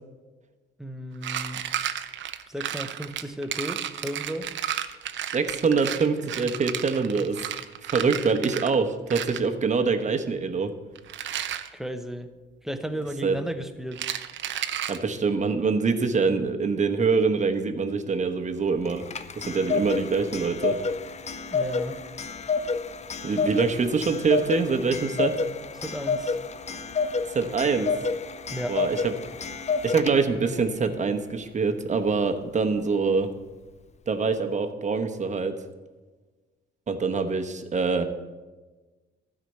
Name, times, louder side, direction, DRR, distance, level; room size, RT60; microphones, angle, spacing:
voice 1, 0.8-1.7 2.5-4.5 11.7-12.3 12.6-14.0 21.5-22.0 25.8-26.4 28.5-28.8, equal, ahead, 8 dB, 0.9 m, -34 dB
sound 1, 1.2-8.8 9.1-9.5 11.0-11.7 13.9-15.0, right 10 dB, 70° right, 0.7 m, -32 dB
voice 2, 5.3-7.4 7.9-10.7 13.2-13.4 14.9-19.1 19.4-20.8 23.2-25.4 27.3-27.9 28.7-29.1 29.8-33.3 34.1-35.5 36.9-38.0, right 4 dB, 35° right, 6 dB, 1.1 m, -24 dB
Clock, 18.9-30.5, left 4 dB, 35° left, 0.6 m, -29 dB
12.5 x 5.0 x 7.9 m, 1.3 s
cardioid pair, 90°, 20 cm